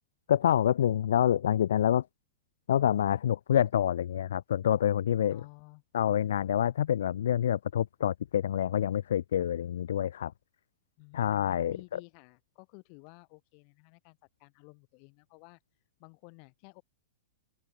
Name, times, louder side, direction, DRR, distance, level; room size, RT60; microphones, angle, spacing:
voice 1, 0.3-2.1 2.7-5.4 5.9-10.3 11.1-11.7, left 10 dB, 75° left, 0.5 m, -27 dB
voice 2, 5.3-5.8 11.0-15.6 16.0-16.8, left 40 dB or more, 50° left, 6.9 m, -54 dB
open air
hypercardioid pair, 110°, 0 cm